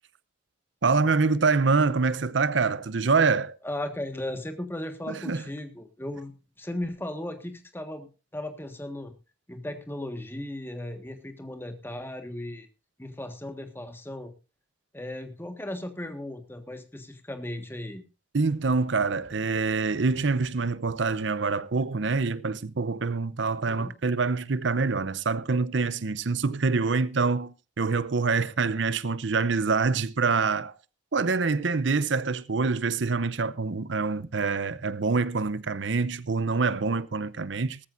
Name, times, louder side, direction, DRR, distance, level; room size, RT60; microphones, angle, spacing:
voice 1, 0.8-3.6 5.1-5.4 18.3-30.7 31.1-37.8, right 4 dB, 65° right, 0.7 m, -25 dB
voice 2, 3.6-9.1 9.5-12.7 13.0-14.3 14.9-18.0 23.7-23.9, left 1 dB, 10° left, 1.6 m, -36 dB
18.5 x 14.0 x 2.6 m
head